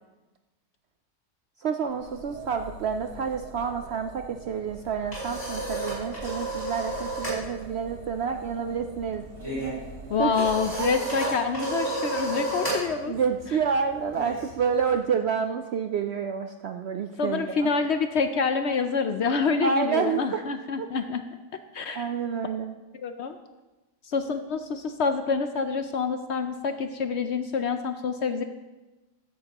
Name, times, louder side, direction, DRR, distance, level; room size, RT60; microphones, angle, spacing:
voice 1, 1.6-9.2 10.2-10.3 10.8-11.1 13.0-17.7 19.6-20.4 20.8-20.9 21.9-22.7, right 6 dB, 80° right, 6 dB, 0.5 m, -28 dB
sound 1, 1.8-11.0, right 3 dB, 50° right, 1.2 m, -44 dB
sound 2, 4.7-7.4 7.7-14.9, right 2 dB, 15° left, 4.8 m, -32 dB
voice 2, 10.1-13.1 17.2-21.2 21.7-22.1 23.0-23.4 24.1-28.4, left 5 dB, 65° left, 8 dB, 0.7 m, -27 dB
15.0 x 11.0 x 3.0 m, 1.1 s
omnidirectional pair, 1.7 m